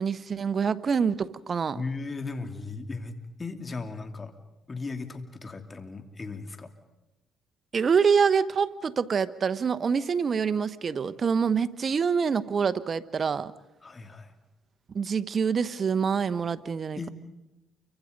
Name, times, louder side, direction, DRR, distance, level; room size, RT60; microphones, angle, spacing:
voice 1, 0.0-1.8 7.7-13.5 14.9-17.1, right 6 dB, 45° right, 14 dB, 1.0 m, -26 dB
voice 2, 1.7-4.3 4.7-6.7 13.8-14.3 17.0-17.1, left 3 dB, 30° left, 6 dB, 2.8 m, -36 dB
29.0 x 24.5 x 5.3 m, 1.0 s
cardioid pair, 80°, 0 cm